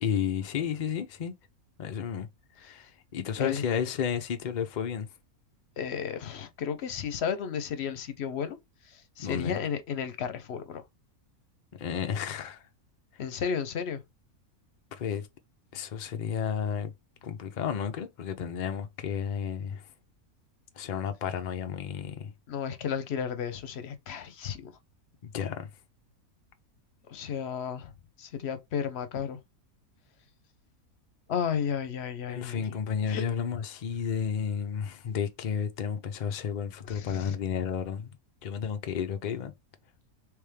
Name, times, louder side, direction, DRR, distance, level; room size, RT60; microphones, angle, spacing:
voice 1, 0.0-1.3 1.8-2.3 2.6-5.1 9.2-9.6 11.8-12.6 14.9-15.3 15.7-16.9 17.2-19.9 20.8-22.3 25.2-25.7 32.3-38.2 38.4-39.5, left 7 dB, 85° left, 0.4 m, -32 dB
voice 2, 5.8-8.6 9.2-10.8 13.2-14.0 22.5-24.7 27.1-27.9 28.2-29.4 31.3-32.6 33.1-33.2 36.9-37.4, left 7 dB, 55° left, 0.8 m, -33 dB
3.4 x 3.1 x 3.3 m
omnidirectional pair, 1.6 m